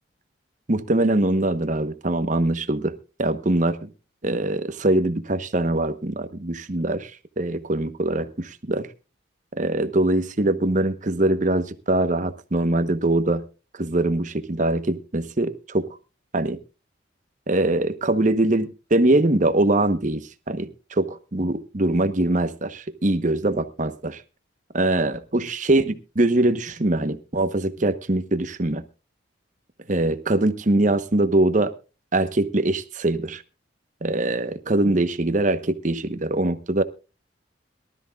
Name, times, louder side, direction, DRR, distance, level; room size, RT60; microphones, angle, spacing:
voice 1, 0.7-2.9 3.2-3.9 4.2-7.1 7.4-8.9 9.6-13.4 13.8-15.9 16.3-16.6 17.5-20.2 20.5-20.7 21.0-24.2 24.7-28.8 29.9-31.7 32.1-33.4 34.0-36.8, right 2 dB, 40° right, 11 dB, 1.0 m, -22 dB
23.0 x 13.0 x 2.4 m, 0.31 s
head